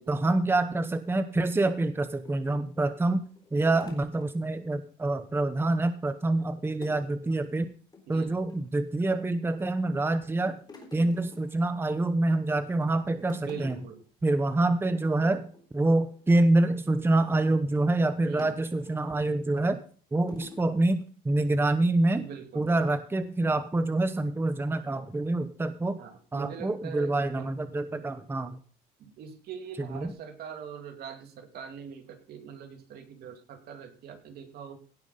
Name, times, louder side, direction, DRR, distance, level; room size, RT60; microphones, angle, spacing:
voice 1, 0.1-3.2 3.5-7.7 8.1-10.6 10.9-13.7 14.2-19.8 20.1-22.3 22.5-26.0 26.3-28.6 29.9-30.1, right 2 dB, 15° right, 11 dB, 0.9 m, -26 dB
sound 1, 2.2-4.8 5.1-5.3 5.6-6.2 6.8-7.2 7.4-7.6 7.9-8.7 9.3-9.8 10.1-12.3 12.7-12.9 13.2-14.1 14.4-14.6 14.9-15.1 15.5-17.3 18.4-19.1 19.7-19.8 20.3-20.7, left 3 dB, 25° left, 4.1 m, -50 dB
voice 2, 8.1-8.5 13.4-14.0 18.2-18.6 22.2-22.7 24.9-25.1 26.0-27.5 27.9-28.1 29.0-34.8, right 7 dB, 70° right, 5 dB, 2.7 m, -43 dB
17.0 x 6.0 x 5.4 m, 0.41 s
cardioid pair, 110°, 17 cm